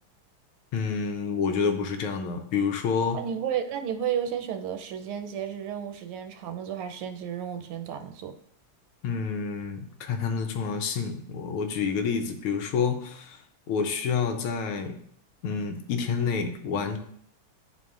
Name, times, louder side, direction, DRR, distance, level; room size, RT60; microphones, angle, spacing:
voice 1, 0.7-3.2 9.0-13.4 13.7-15.0 15.4-17.0, left 5 dB, 85° left, 6 dB, 1.6 m, -28 dB
voice 2, 3.1-8.3, right 9 dB, 85° right, 6 dB, 1.6 m, -32 dB
10.5 x 3.9 x 2.4 m, 0.65 s
omnidirectional pair, 2.4 m